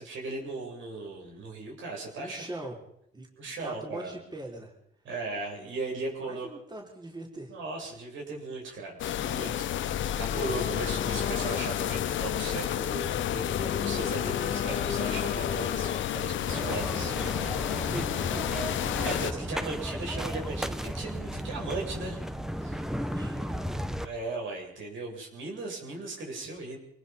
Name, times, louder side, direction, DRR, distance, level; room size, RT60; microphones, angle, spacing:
voice 1, 0.0-2.7 3.4-4.2 5.0-6.5 7.5-17.1 17.7-18.0 19.0-22.2 22.6-22.9 24.0-26.8, right 3 dB, 75° right, 0 dB, 7.8 m, -37 dB
voice 2, 2.2-2.8 3.1-4.7 6.2-7.6 17.8-18.8 23.1-23.8, right 1 dB, 20° right, 0 dB, 4.5 m, -42 dB
sound 1, 9.0-19.3, left 11 dB, 70° left, 1.0 m, -31 dB
Singing / Musical instrument, 10.3-16.0, left 7 dB, 40° left, 1.0 m, -36 dB
sound 2, 16.5-24.1, equal, ahead, 1.4 m, -34 dB
25.0 x 20.0 x 5.6 m, 0.74 s
cardioid pair, 90°, 20 cm